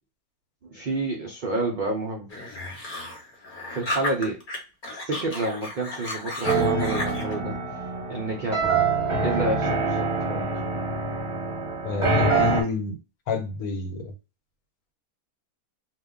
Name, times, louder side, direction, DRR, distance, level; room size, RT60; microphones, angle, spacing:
voice 1, 0.6-2.3 3.7-4.4 4.9-7.6 8.1-8.7 9.2-10.5, right 2 dB, 75° right, 0 dB, 0.4 m, -29 dB
sound 1, 2.3-4.6 4.8-7.3, left 1 dB, 40° left, 0.8 m, -33 dB
sound 2, 6.4-12.6, right 3 dB, 25° right, 0.8 m, -25 dB
voice 2, 11.8-13.0 13.3-14.1, left 5 dB, 85° left, 5 dB, 1.2 m, -28 dB
2.4 x 2.2 x 3.6 m, 0.31 s
omnidirectional pair, 1.5 m